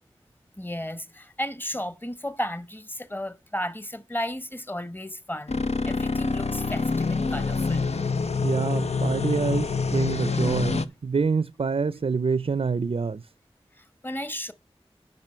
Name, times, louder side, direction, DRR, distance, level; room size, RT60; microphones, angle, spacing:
voice 1, 0.6-7.9 13.7-14.5, equal, 20° left, 1.2 m, -34 dB
sound 1, 5.5-10.9, left 4 dB, 80° left, 0.8 m, -26 dB
voice 2, 8.4-13.3, right 5 dB, 65° right, 0.5 m, -26 dB
10.5 x 5.6 x 5.5 m
wide cardioid pair, 55°, 11 cm